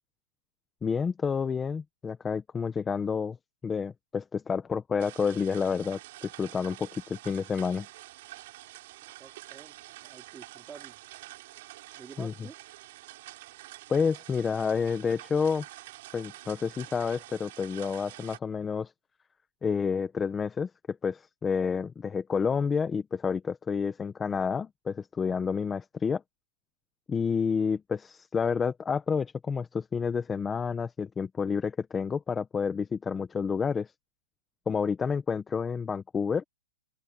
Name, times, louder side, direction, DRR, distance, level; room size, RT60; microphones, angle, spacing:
voice 1, 0.8-3.4 3.6-7.9 12.2-12.3 13.9-15.6 16.1-18.9 19.6-26.2 27.1-33.9 34.7-36.4, left 6 dB, 10° left, 1.0 m, -29 dB
sound 1, 5.0-18.4, right 17 dB, 45° right, 5.7 m, -47 dB
voice 2, 9.0-11.0 11.9-12.6, right 6 dB, 10° right, 4.4 m, -50 dB
open air
hypercardioid pair, 165°, 0 cm